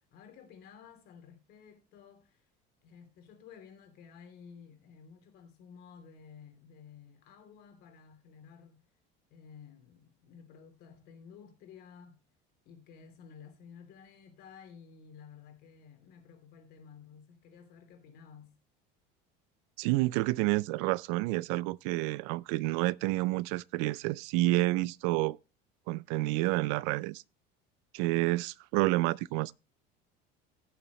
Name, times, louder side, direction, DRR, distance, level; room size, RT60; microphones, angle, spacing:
voice 1, 0.0-2.4 2.8-8.9 9.3-12.2 12.6-18.6, left 7 dB, 50° left, 3.0 m, -53 dB
voice 2, 19.8-25.4 25.9-27.2 27.9-29.5, right 20 dB, 75° right, 0.4 m, -29 dB
16.5 x 6.9 x 3.1 m
cardioid pair, 165°, 21 cm